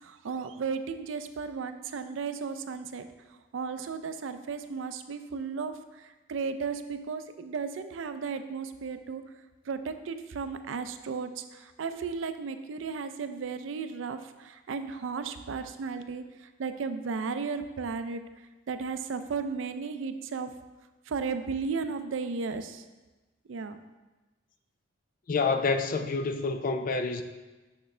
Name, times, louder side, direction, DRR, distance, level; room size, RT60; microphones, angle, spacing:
voice 1, 0.0-3.1 3.5-9.2 9.7-16.2 16.6-18.2 18.7-20.5 21.1-22.8 23.5-23.8, right 5 dB, 80° right, 10 dB, 0.4 m, -34 dB
voice 2, 25.3-27.2, left 4 dB, 45° left, 8 dB, 0.4 m, -28 dB
6.5 x 5.9 x 3.3 m, 1.2 s
head